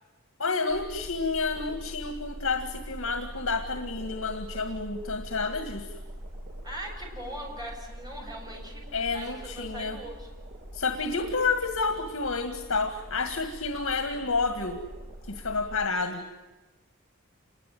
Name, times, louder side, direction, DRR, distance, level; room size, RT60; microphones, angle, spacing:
voice 1, 0.4-6.0 8.9-10.0 10.7-14.8 15.2-16.3, left 4 dB, 85° left, 7 dB, 1.9 m, -30 dB
sound 1, 0.7-15.9, right 1 dB, 55° right, 5.8 m, -43 dB
voice 2, 6.6-8.9 9.1-10.3, right 1 dB, 20° right, 0 dB, 7.1 m, -40 dB
27.5 x 21.5 x 9.3 m, 1.2 s
head